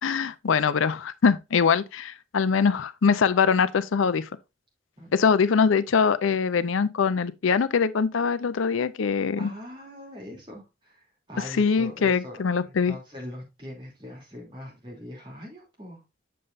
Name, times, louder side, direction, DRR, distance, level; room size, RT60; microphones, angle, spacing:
voice 1, 0.0-4.3 5.1-9.5 11.6-12.9, left 5 dB, 80° left, 0.5 m, -23 dB
voice 2, 9.4-16.0, left 1 dB, 25° right, 2.7 m, -41 dB
7.6 x 6.6 x 2.5 m
head